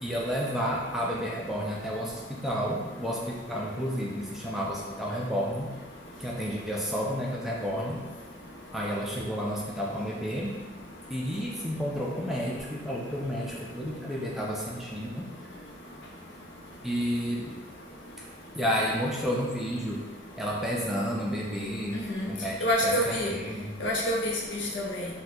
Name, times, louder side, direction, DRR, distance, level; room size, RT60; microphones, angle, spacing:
voice 1, 0.0-5.7 6.2-8.0 8.7-10.6 11.1-15.3 16.8-17.5 18.2-18.3 18.6-20.1 20.4-22.6 22.8-23.8, equal, ahead, -4 dB, 0.3 m, -31 dB
voice 2, 22.6-23.3 23.8-25.1, equal, 80° left, -2 dB, 0.6 m, -27 dB
2.7 x 2.2 x 3.9 m, 1.3 s
head